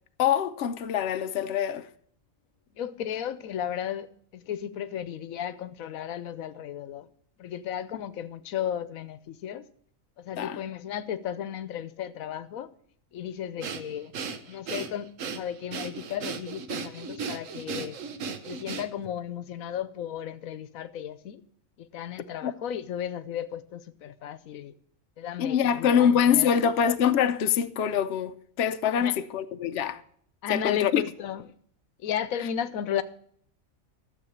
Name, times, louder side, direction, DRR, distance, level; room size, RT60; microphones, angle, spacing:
voice 1, 0.2-1.9 10.4-10.6 22.4-22.5 25.4-30.0 30.5-31.0, left 8 dB, 60° left, 0.9 m, -24 dB
voice 2, 2.8-4.1 4.3-7.1 7.4-9.7 10.2-12.7 13.1-14.1 14.5-18.0 18.5-21.4 21.8-24.7 25.2-26.6 29.0-29.1 30.4-31.4 32.0-33.0, left 9 dB, 85° left, 1.1 m, -34 dB
Breathing, 13.6-19.1, right 5 dB, 70° right, 1.3 m, -36 dB
13.0 x 7.3 x 7.1 m
omnidirectional pair, 1.4 m